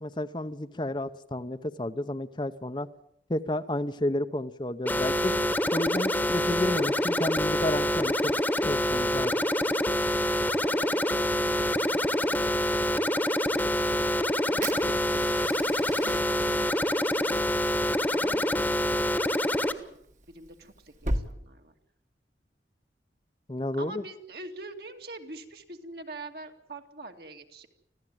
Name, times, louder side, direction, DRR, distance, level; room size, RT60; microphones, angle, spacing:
voice 1, 0.0-2.9 3.3-5.4 5.7-8.3 8.6-9.4 23.5-24.0, left 1 dB, 25° left, 10 dB, 0.9 m, -31 dB
sound 1, 4.8-19.7, left 1 dB, 10° left, 1.3 m, -26 dB
voice 2, 10.6-14.2 14.5-15.0 16.0-17.4 18.1-19.9 20.3-21.7 23.8-27.7, right 2 dB, 60° right, 4 dB, 2.4 m, -45 dB
Fire, 14.6-21.2, right 1 dB, 45° right, 1.7 m, -38 dB
25.5 x 16.0 x 9.1 m, 0.74 s
head